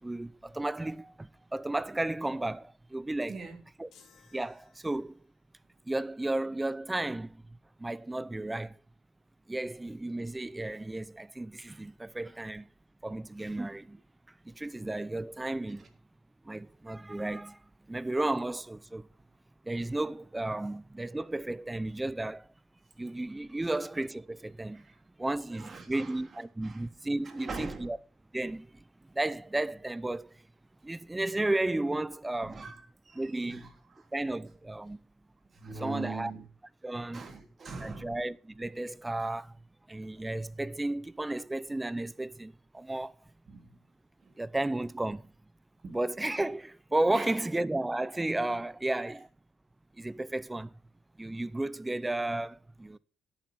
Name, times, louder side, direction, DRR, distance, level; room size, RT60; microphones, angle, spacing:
voice 1, 0.0-3.4 3.8-3.9 4.3-5.2 5.9-8.8 9.5-12.7 13.0-14.0 14.4-15.9 16.4-17.6 17.9-19.1 19.6-22.5 23.0-24.9 25.2-28.0 28.3-30.4 30.8-32.6 33.2-33.7 34.1-35.0 35.8-36.3 36.8-37.3 37.8-39.6 39.9-43.2 44.4-45.3 45.9-49.3 50.0-50.8 51.2-53.0, right 2 dB, 15° right, 0.6 m, -33 dB
sound 1, 3.9-5.4, left 6 dB, 75° left, 3.1 m, -61 dB
voice 2, 25.5-26.2 26.6-26.8 27.2-27.9 32.4-33.7 33.9-34.1 35.5-36.5 37.1-38.1 43.5-43.8 44.2-44.3 45.8-46.0 47.1-47.3, right 4 dB, 45° right, 3.2 m, -42 dB
10.5 x 8.6 x 5.6 m
cardioid pair, 90°, 0 cm